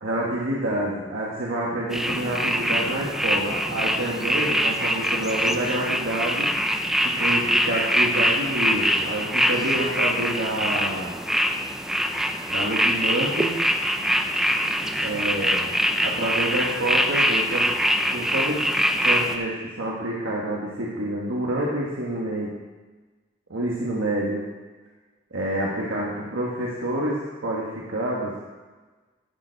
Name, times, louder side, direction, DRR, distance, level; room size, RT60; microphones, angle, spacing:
voice 1, 0.0-6.5 7.0-11.2 12.5-13.6 15.0-15.7 16.0-18.7 19.0-22.5 23.5-24.4 25.3-28.3, right 1 dB, 85° right, -4 dB, 1.3 m, -28 dB
sound 1, 1.9-19.4, equal, ahead, 0.5 m, -24 dB
11.5 x 6.8 x 4.5 m, 1.3 s
head